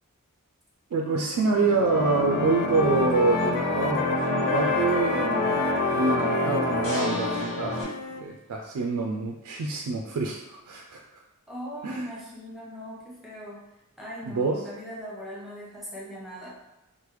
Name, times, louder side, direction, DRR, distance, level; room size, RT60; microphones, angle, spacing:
voice 1, 0.9-11.0 11.8-12.1 14.3-14.6, right 4 dB, 80° right, 1 dB, 0.3 m, -27 dB
Wind instrument woodwind instrument, 1.0-1.4 1.7-8.3, left 5 dB, 85° left, 0.3 m, -32 dB
sound 1, 1.4-7.8, left 2 dB, 65° left, 0.9 m, -27 dB
voice 2, 11.5-13.6 14.0-16.5, equal, ahead, -6 dB, 0.7 m, -39 dB
3.2 x 2.1 x 3.0 m, 0.98 s
head